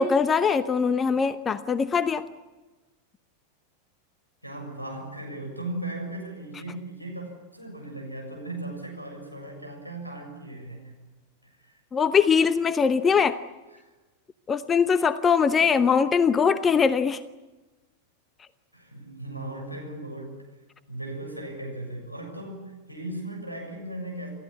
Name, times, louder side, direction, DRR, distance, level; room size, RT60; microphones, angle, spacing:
voice 1, 0.0-2.3 11.9-13.4 14.5-17.2, left 6 dB, 20° left, 14 dB, 0.9 m, -22 dB
voice 2, 4.4-11.0 11.4-11.8 13.8-13.9 18.7-20.4 20.9-24.3, right 1 dB, 90° left, 2 dB, 7.1 m, -37 dB
28.5 x 15.0 x 9.8 m, 1.2 s
figure-of-eight pair, 90°, 0 cm